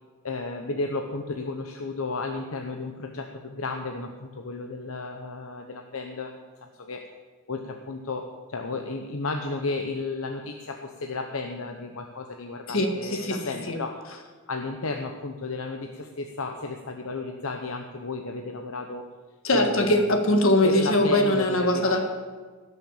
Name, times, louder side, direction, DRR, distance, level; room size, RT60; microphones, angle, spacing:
voice 1, 0.2-6.3 6.8-7.0 7.5-14.0 14.5-19.1 19.5-20.2 20.6-22.0, left 3 dB, 85° left, 3 dB, 0.9 m, -33 dB
voice 2, 12.7-13.4 13.7-13.8 19.4-22.0, left 1 dB, 70° left, 4 dB, 1.9 m, -22 dB
16.0 x 6.6 x 7.3 m, 1.4 s
head